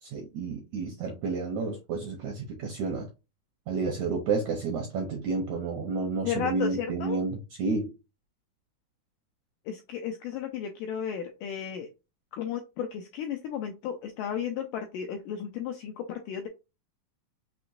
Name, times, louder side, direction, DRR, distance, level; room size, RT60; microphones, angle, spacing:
voice 1, 0.0-3.1 3.7-7.9, right 4 dB, 80° right, 1.6 m, -31 dB
voice 2, 6.3-7.2 9.7-11.9 12.3-16.5, left 8 dB, 85° left, 1.9 m, -34 dB
6.0 x 2.9 x 2.5 m
omnidirectional pair, 4.4 m